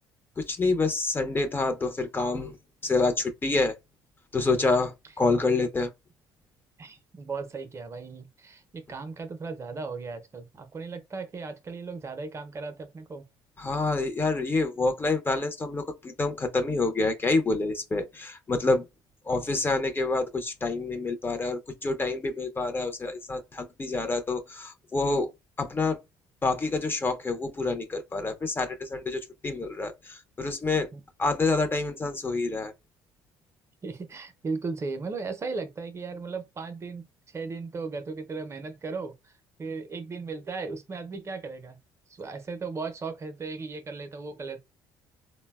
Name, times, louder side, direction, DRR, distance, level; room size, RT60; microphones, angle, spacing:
voice 1, 0.4-2.6 2.8-3.8 4.3-5.9 13.6-18.9 19.3-25.3 25.6-26.0 26.4-30.9 31.2-32.7, left 3 dB, 25° left, 0.5 m, -27 dB
voice 2, 6.8-13.2 30.9-31.0 33.8-39.3 39.6-41.8 42.1-44.6, right 4 dB, 30° right, 0.5 m, -36 dB
3.7 x 2.0 x 2.2 m
supercardioid pair, 90°, 9 cm